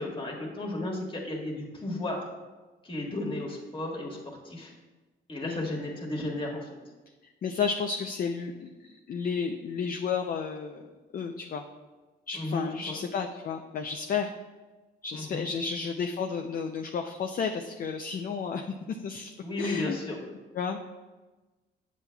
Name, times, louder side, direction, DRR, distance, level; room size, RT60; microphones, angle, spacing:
voice 1, 0.0-2.2 2.8-4.7 5.3-6.7 12.3-13.0 15.1-15.4 19.4-20.2, left 1 dB, 25° left, -1 dB, 1.7 m, -34 dB
voice 2, 7.4-8.7 9.1-10.8 11.1-11.6 12.3-14.3 15.0-20.0 20.5-20.9, left 6 dB, 45° left, 4 dB, 0.5 m, -32 dB
8.1 x 7.2 x 2.3 m, 1.2 s
cardioid pair, 90°, 20 cm